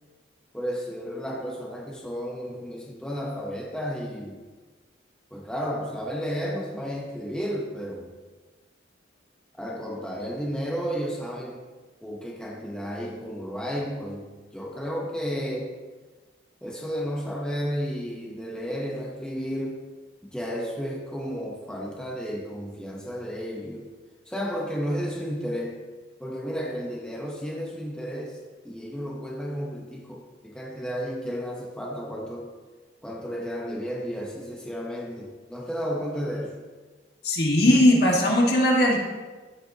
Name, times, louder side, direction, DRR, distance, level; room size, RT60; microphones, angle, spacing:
voice 1, 0.5-4.4 5.3-8.1 9.6-11.6 12.0-15.7 16.6-19.8 20.2-23.9 24.3-25.8 26.2-28.4 28.6-32.5 33.0-36.6, equal, 5° left, -2 dB, 0.7 m, -32 dB
voice 2, 37.2-39.0, left 1 dB, 55° left, -1 dB, 1.7 m, -19 dB
13.5 x 6.7 x 2.8 m, 1.3 s
head